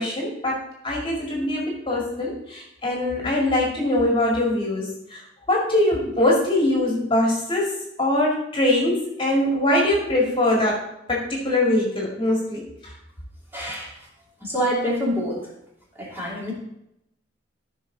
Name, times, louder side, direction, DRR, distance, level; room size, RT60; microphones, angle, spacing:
voice 1, 0.0-5.2 5.5-7.7 8.0-10.8 11.1-12.9, left 1 dB, 30° left, -2 dB, 2.2 m, -22 dB
voice 2, 13.5-13.9 14.4-15.4 16.0-16.5, equal, 10° right, -5 dB, 2.9 m, -26 dB
14.0 x 5.8 x 4.0 m, 0.81 s
head